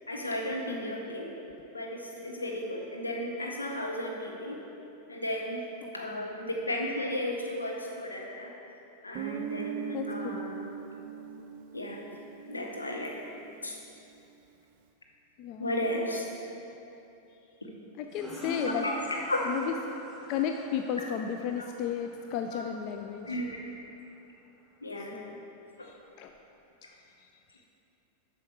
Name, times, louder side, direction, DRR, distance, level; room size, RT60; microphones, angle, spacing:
voice 1, 0.1-1.3 1.7-4.6 5.1-5.7 5.9-8.5 9.0-10.6 11.7-12.0 12.5-13.2 13.6-13.8 15.6-16.2 18.6-19.5 22.5-22.7 23.2-23.6 24.8-25.2 25.8-25.9, left 1 dB, 80° left, -1 dB, 1.0 m, -34 dB
voice 2, 0.7-1.0 5.8-6.3 9.9-10.4 15.4-15.7 18.0-18.9 19.5-19.7 20.3-23.4 25.1-25.4 25.8-26.3 27.2-27.3, left 8 dB, 45° left, 5 dB, 0.3 m, -34 dB
Guitar, 9.1-13.7, right 7 dB, 45° right, 0.5 m, -39 dB
sound 1, 18.1-23.5, left 1 dB, ahead, 1.6 m, -43 dB
7.6 x 5.7 x 4.7 m, 3.0 s
figure-of-eight pair, 90°, 0 cm